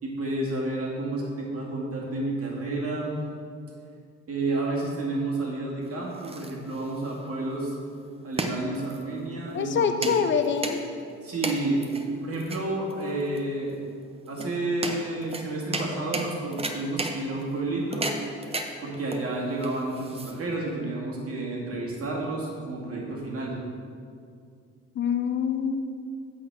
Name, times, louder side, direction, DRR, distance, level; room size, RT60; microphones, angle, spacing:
voice 1, 0.0-3.1 4.3-7.8 8.2-10.3 11.2-11.9 12.2-13.8 14.3-18.0 18.8-23.6, right 2 dB, 50° right, -3 dB, 2.2 m, -30 dB
sound 1, 5.8-20.7, right 2 dB, 20° right, 0.7 m, -36 dB
voice 2, 9.5-10.8 25.0-25.9, left 6 dB, 40° left, 7 dB, 0.6 m, -25 dB
8.4 x 4.1 x 6.8 m, 2.3 s
cardioid pair, 90°, 30 cm